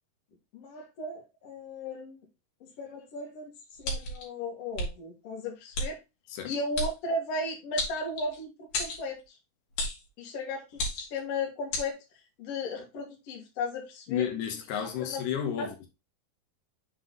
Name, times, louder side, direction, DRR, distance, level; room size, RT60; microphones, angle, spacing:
voice 1, 0.5-2.3 2.6-3.5 3.8-6.0 6.4-9.4 10.2-12.0 12.4-14.3 15.0-15.2 15.6-15.7, left 2 dB, 50° left, 2.2 m, -35 dB
sound 1, 3.8-4.2 4.7-4.9 5.7-5.9 6.7-6.9 7.8-8.4 8.7-9.0 9.8-10.0 10.7-11.2 11.7-11.9, left 1 dB, 70° left, 3.4 m, -31 dB
voice 2, 14.1-15.9, left 9 dB, 90° left, 3.2 m, -32 dB
6.5 x 3.9 x 3.7 m
omnidirectional pair, 4.5 m